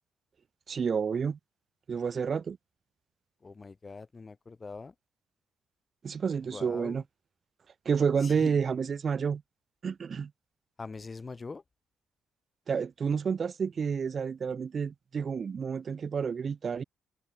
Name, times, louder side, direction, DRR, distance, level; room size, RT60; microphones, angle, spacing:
voice 1, 0.7-1.4 1.9-2.6 6.0-7.0 7.9-9.4 9.8-10.3 12.7-16.8, right 6 dB, 45° right, 0.3 m, -30 dB
voice 2, 3.4-4.9 6.4-7.0 8.2-8.6 10.8-11.6, left 4 dB, 30° left, 1.8 m, -43 dB
cardioid pair, 90°, 0 cm